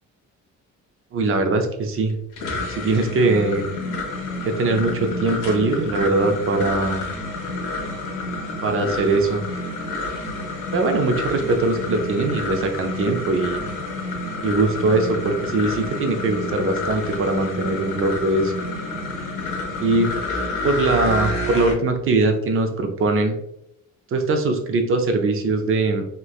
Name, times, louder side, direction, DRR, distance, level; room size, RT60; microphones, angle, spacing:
voice 1, 1.1-2.2 2.8-3.7 4.4-7.0 8.6-9.4 10.7-13.6 14.4-18.5 19.8-20.1 20.6-23.4 24.1-26.0, right 3 dB, 45° right, 5 dB, 0.5 m, -21 dB
sound 1, 2.1-21.7, left 2 dB, 80° left, 0.8 m, -29 dB
3.1 x 2.1 x 2.3 m, 0.79 s
cardioid pair, 90°, 30 cm